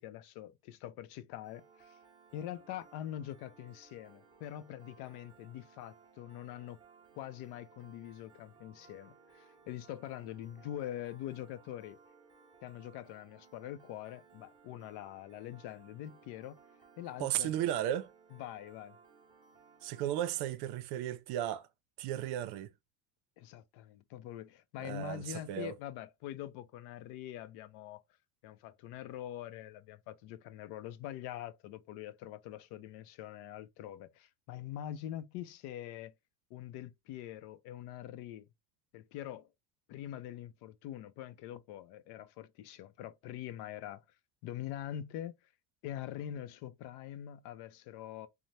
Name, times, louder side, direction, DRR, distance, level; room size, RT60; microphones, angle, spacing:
voice 1, 0.0-2.0 2.3-6.8 7.2-12.0 12.6-16.6 17.0-17.5 18.3-19.0 23.4-28.0 28.4-36.1 36.5-38.5 38.9-39.5 39.9-44.0 44.4-45.4 45.8-48.3, left 12 dB, 75° left, 0.5 m, -44 dB
Piano, 1.4-20.5, right 5 dB, 10° right, 0.7 m, -61 dB
voice 2, 17.2-18.1 19.8-21.7 22.0-22.7 24.8-25.7, right 12 dB, 70° right, 0.5 m, -35 dB
2.7 x 2.1 x 3.1 m
cardioid pair, 155°, 40 cm